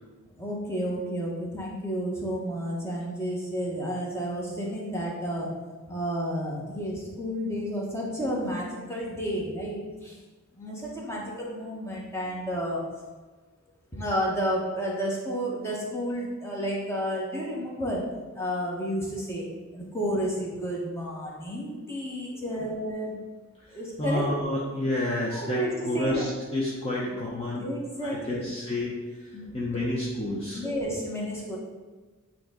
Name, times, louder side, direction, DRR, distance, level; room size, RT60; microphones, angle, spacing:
voice 1, 0.4-5.5 5.9-10.1 10.5-12.9 13.9-18.1 18.3-19.5 19.7-23.1 23.7-24.3 25.3-26.3 27.6-28.5 29.3-29.5 30.5-31.6, equal, 10° left, -4 dB, 1.2 m, -31 dB
voice 2, 22.3-22.7 23.6-27.7 28.0-29.0 29.2-30.6, left 1 dB, 30° left, -5 dB, 0.8 m, -30 dB
8.8 x 3.0 x 3.8 m, 1.3 s
head